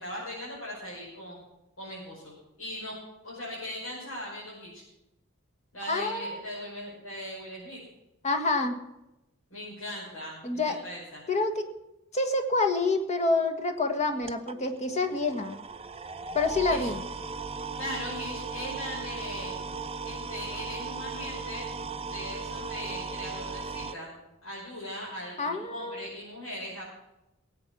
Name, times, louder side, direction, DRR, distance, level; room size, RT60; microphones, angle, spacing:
voice 1, 0.0-1.4 1.8-2.9 3.2-4.8 5.7-7.8 9.5-11.2 16.7-16.8 17.7-21.7 22.0-24.2 24.4-26.9, equal, 85° left, -6 dB, 5.8 m, -39 dB
voice 2, 5.9-6.4 8.2-8.8 10.4-10.8 11.3-11.6 12.1-15.6 16.3-17.0 25.4-26.1, left 3 dB, 35° left, 7 dB, 1.5 m, -27 dB
sound 1, 14.0-23.9, right 4 dB, 30° right, 0.6 m, -37 dB
18.0 x 8.7 x 6.2 m, 0.92 s
head